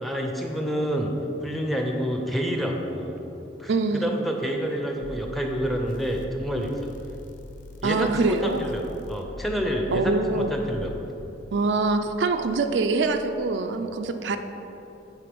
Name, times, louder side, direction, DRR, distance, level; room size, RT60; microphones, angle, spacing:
voice 1, 0.0-1.1 1.4-3.1 3.6-6.7 7.8-11.0, equal, ahead, 1 dB, 0.6 m, -28 dB
voice 2, 3.7-4.1 7.8-8.6 9.9-10.6 11.5-14.4, right 3 dB, 65° right, 7 dB, 0.4 m, -24 dB
sound 1, 5.0-13.6, left 2 dB, 45° left, 0.4 m, -43 dB
9.0 x 3.8 x 5.3 m, 3.0 s
head